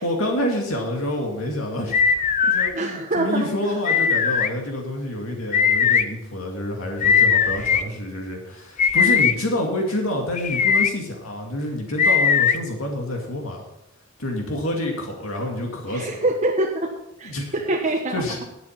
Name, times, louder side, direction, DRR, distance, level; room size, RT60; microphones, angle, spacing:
voice 1, 0.0-2.0 2.4-13.6 14.2-16.1 17.2-17.5 18.1-18.4, left 1 dB, 80° left, 1 dB, 2.3 m, -28 dB
sound 1, 1.9-2.7 3.9-4.5 5.5-6.0 7.0-7.8 8.8-9.3 10.4-10.9 12.0-12.6, left 6 dB, 35° left, 0.5 m, -18 dB
voice 2, 2.7-3.7 15.9-16.9 17.2-18.2, right 2 dB, 35° right, 1 dB, 1.1 m, -25 dB
11.0 x 8.3 x 5.8 m, 0.83 s
head